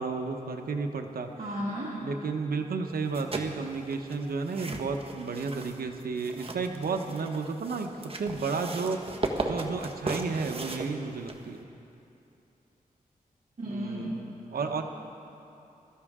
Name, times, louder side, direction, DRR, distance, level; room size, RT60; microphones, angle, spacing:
voice 1, 0.0-1.3 2.0-11.6 13.7-14.8, right 4 dB, 85° right, 5 dB, 1.0 m, -32 dB
voice 2, 1.4-1.9 13.6-14.2 14.8-14.9, equal, 60° right, -7 dB, 2.4 m, -34 dB
sound 1, 3.0-11.6, right 2 dB, 40° right, 1.3 m, -37 dB
22.5 x 13.5 x 3.7 m, 2.8 s
cardioid pair, 70°, 15 cm